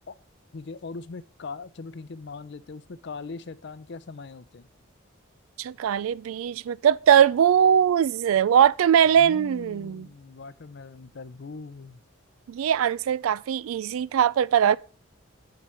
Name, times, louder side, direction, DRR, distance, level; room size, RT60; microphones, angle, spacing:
voice 1, 0.5-4.7 9.2-12.0, left 4 dB, 55° left, 0.5 m, -40 dB
voice 2, 5.6-10.1 12.5-14.8, right 9 dB, 85° right, 0.3 m, -21 dB
7.5 x 5.0 x 5.4 m
head